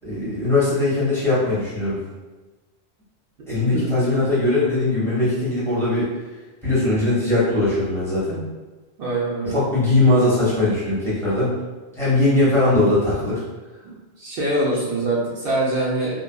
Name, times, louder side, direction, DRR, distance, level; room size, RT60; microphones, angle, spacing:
voice 1, 0.0-2.0 3.5-6.1 6.6-8.4 9.4-11.5 12.0-13.4, left 2 dB, 5° left, -11 dB, 1.1 m, -20 dB
voice 2, 9.0-9.7 13.8-16.2, right 2 dB, 70° right, -6 dB, 0.8 m, -24 dB
2.5 x 2.2 x 2.2 m, 1.2 s
omnidirectional pair, 1.1 m